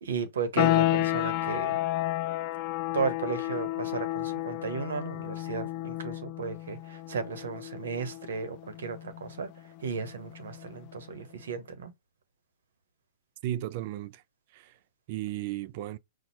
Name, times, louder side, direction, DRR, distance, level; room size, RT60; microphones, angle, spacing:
voice 1, 0.0-1.8 2.9-11.9, right 5 dB, 80° right, 1.0 m, -35 dB
sound 1, 0.6-11.1, left 15 dB, 45° left, 0.4 m, -31 dB
voice 2, 13.4-14.2 14.5-14.8 15.1-16.0, right 13 dB, 55° right, 0.4 m, -35 dB
4.4 x 2.3 x 4.1 m
hypercardioid pair, 125°, 0 cm